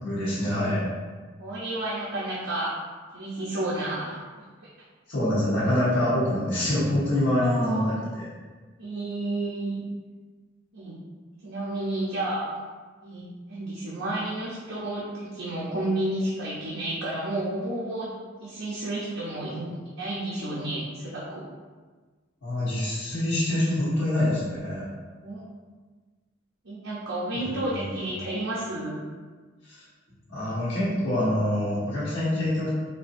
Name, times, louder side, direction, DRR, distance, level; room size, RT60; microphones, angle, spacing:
voice 1, 0.0-0.9 5.1-8.3 22.4-24.8 27.5-28.1 29.7-29.8 30.3-32.7, left 1 dB, 75° left, -13 dB, 1.3 m, -25 dB
voice 2, 1.4-2.8 3.1-4.2 7.3-7.9 8.8-9.8 10.7-10.9 11.4-12.5 13.0-18.1 18.4-21.4 25.2-25.4 26.6-29.0, right 1 dB, 80° right, -7 dB, 0.8 m, -31 dB
4.4 x 2.7 x 2.6 m, 1.4 s
head